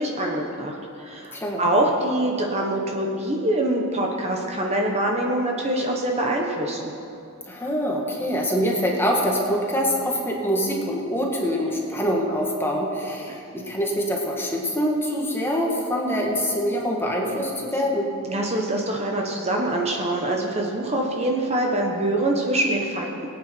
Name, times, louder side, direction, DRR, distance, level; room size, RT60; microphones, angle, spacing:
voice 1, 0.0-6.9 18.3-23.3, right 1 dB, 30° right, 0 dB, 1.2 m, -24 dB
voice 2, 1.3-1.6 7.5-18.1, equal, 10° left, -1 dB, 1.7 m, -24 dB
21.5 x 8.8 x 4.5 m, 2.7 s
head